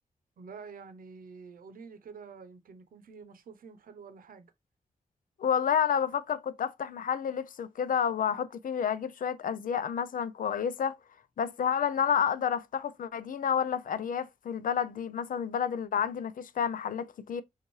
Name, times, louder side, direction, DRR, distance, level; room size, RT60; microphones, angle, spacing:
voice 1, 0.4-4.5, right 5 dB, 80° right, 0.7 m, -48 dB
voice 2, 5.4-11.0 11.4-17.4, left 8 dB, 75° left, 0.5 m, -30 dB
5.3 x 2.5 x 3.1 m
wide cardioid pair, 90°, 14 cm